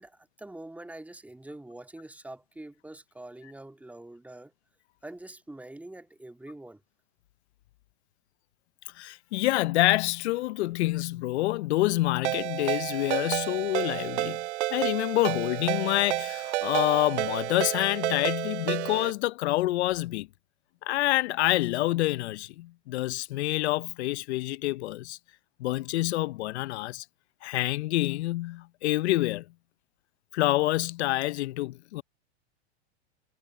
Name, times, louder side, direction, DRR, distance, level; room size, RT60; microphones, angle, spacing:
voice 1, 0.0-4.5 5.0-6.8, right 1 dB, 5° right, 2.3 m, -45 dB
voice 2, 9.0-14.4 14.7-20.3 20.8-25.2 25.6-27.0 27.4-29.4 30.3-32.0, left 17 dB, 75° left, 0.7 m, -27 dB
Ringtone, 12.2-19.1, right 18 dB, 85° right, 0.5 m, -31 dB
supercardioid pair, 130°, 33 cm